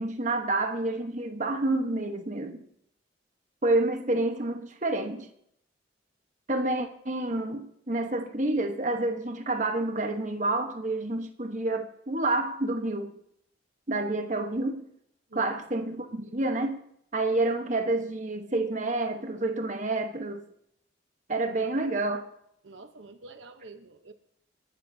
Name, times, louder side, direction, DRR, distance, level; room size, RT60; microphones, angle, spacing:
voice 1, 0.0-2.6 3.6-5.3 6.5-13.1 13.9-14.9 15.3-16.8 17.1-20.4 21.3-22.3, right 2 dB, 40° right, 5 dB, 1.2 m, -28 dB
voice 2, 22.6-24.1, right 3 dB, 75° right, 8 dB, 1.0 m, -47 dB
30.0 x 11.5 x 2.8 m, 0.74 s
head